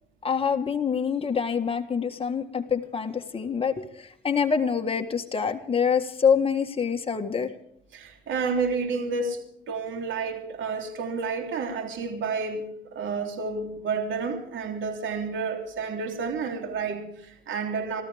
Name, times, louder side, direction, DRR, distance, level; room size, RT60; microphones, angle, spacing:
voice 1, 0.2-7.5, left 6 dB, 30° left, 4 dB, 1.6 m, -26 dB
voice 2, 7.9-9.4 9.7-18.0, right 4 dB, 75° right, 3 dB, 3.4 m, -30 dB
26.5 x 14.0 x 3.5 m, 0.70 s
cardioid pair, 90°, 20 cm